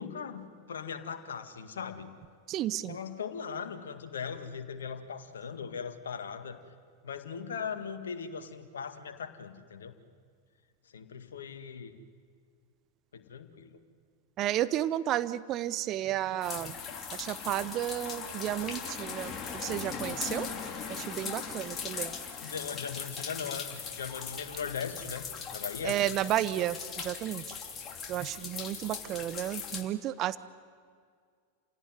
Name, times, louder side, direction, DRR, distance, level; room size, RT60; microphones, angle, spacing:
voice 1, 0.0-2.1 2.9-6.6 7.0-9.9 10.9-12.0 13.1-13.8 22.4-25.3 25.5-26.0, left 6 dB, 65° left, 8 dB, 1.9 m, -39 dB
voice 2, 2.5-3.0 14.4-16.7 17.1-20.5 20.9-22.1 25.8-27.4 28.1-30.4, right 13 dB, 35° right, 16 dB, 0.7 m, -32 dB
sound 1, 16.4-29.8, left 6 dB, 25° left, 3.0 m, -39 dB
29.0 x 17.5 x 9.4 m, 2.1 s
figure-of-eight pair, 90°, 0 cm